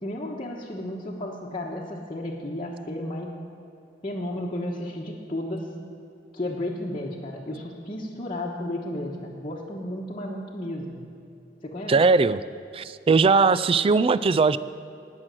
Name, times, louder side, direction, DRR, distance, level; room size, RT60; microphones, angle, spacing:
voice 1, 0.0-3.3 4.0-5.7 6.3-11.0 11.6-12.0, left 1 dB, 30° left, -4 dB, 1.2 m, -33 dB
voice 2, 11.9-12.4 12.7-14.6, right 4 dB, 30° right, 16 dB, 0.3 m, -19 dB
18.5 x 6.2 x 7.7 m, 2.6 s
head